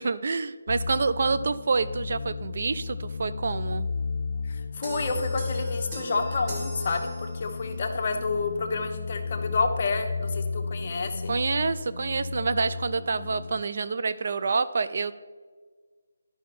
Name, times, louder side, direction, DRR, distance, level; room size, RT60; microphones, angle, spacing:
voice 1, 0.0-3.9 11.3-15.2, right 4 dB, 50° right, 13 dB, 0.3 m, -27 dB
sound 1, 0.7-13.6, left 4 dB, 55° left, 0.4 m, -34 dB
voice 2, 4.4-11.3, left 4 dB, 40° left, 3 dB, 0.9 m, -29 dB
sound 2, 4.8-7.7, right 1 dB, 20° right, 2.1 m, -39 dB
11.0 x 5.5 x 4.2 m, 1.5 s
figure-of-eight pair, 165°, 0 cm